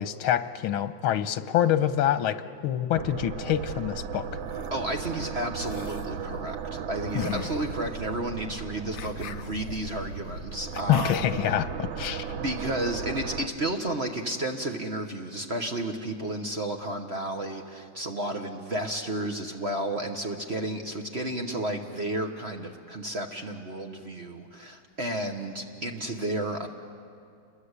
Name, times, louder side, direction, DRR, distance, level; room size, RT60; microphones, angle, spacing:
voice 1, 0.0-4.3 7.2-7.5 10.9-12.3, left 11 dB, 85° left, 11 dB, 1.7 m, -26 dB
sound 1, 2.9-13.5, right 6 dB, 85° right, 1.8 m, -36 dB
sound 2, 4.2-4.7 5.6-6.1 7.1-11.5, left 8 dB, 60° left, 1.0 m, -45 dB
voice 2, 4.7-11.2 12.3-26.7, right 1 dB, 35° right, 4 dB, 1.2 m, -32 dB
28.5 x 22.0 x 8.2 m, 2.4 s
omnidirectional pair, 2.2 m